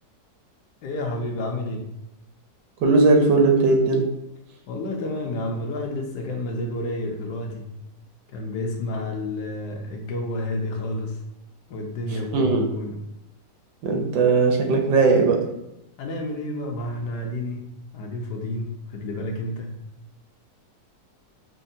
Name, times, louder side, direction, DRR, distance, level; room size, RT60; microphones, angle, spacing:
voice 1, 0.8-1.9 4.7-7.7 8.3-11.2 11.7-13.0 16.0-19.7, left 1 dB, 70° left, 1 dB, 1.1 m, -30 dB
voice 2, 2.8-4.1 12.3-12.7 13.8-15.5, right 3 dB, 75° right, 3 dB, 1.2 m, -18 dB
5.2 x 2.1 x 2.6 m, 0.84 s
omnidirectional pair, 1.9 m